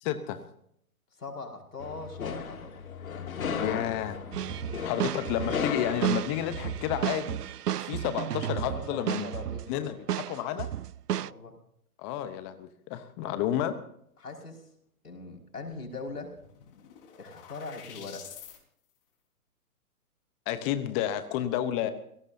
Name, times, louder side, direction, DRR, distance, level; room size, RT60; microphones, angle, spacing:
voice 1, 0.0-0.4 3.6-4.2 4.8-7.4 7.8-9.3 9.7-9.9 10.3-10.7 12.0-13.7 20.5-21.9, left 11 dB, 20° left, 11 dB, 0.8 m, -31 dB
voice 2, 1.1-2.8 4.7-4.8 8.7-10.0 11.1-11.6 13.2-13.4 14.2-14.7 15.0-16.3 17.2-18.3, left 3 dB, 85° left, 2 dB, 5.5 m, -41 dB
sound 1, 1.8-7.0, left 6 dB, 65° left, 2.5 m, -36 dB
sound 2, 4.3-9.8 10.1-11.3, right 11 dB, 85° right, 0.6 m, -33 dB
sound 3, 16.1-18.6, left 8 dB, 40° left, 4.5 m, -48 dB
28.0 x 17.5 x 2.7 m, 0.69 s
hypercardioid pair, 135°, 45 cm